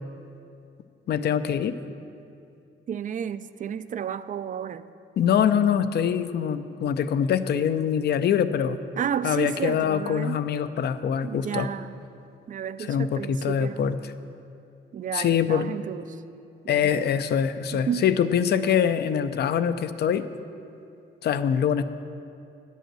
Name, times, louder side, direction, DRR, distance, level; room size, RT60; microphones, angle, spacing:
voice 1, 1.1-1.8 5.2-8.8 9.2-11.7 12.9-14.0 15.1-15.7 16.7-20.3 21.2-21.8, left 8 dB, 55° left, 12 dB, 0.5 m, -24 dB
voice 2, 2.9-4.8 9.0-10.4 11.2-12.0 12.5-13.9 14.9-16.2 16.6-17.2 17.7-18.0, right 8 dB, 40° right, 14 dB, 0.4 m, -32 dB
10.0 x 5.5 x 7.5 m, 2.6 s
cardioid pair, 90°, 20 cm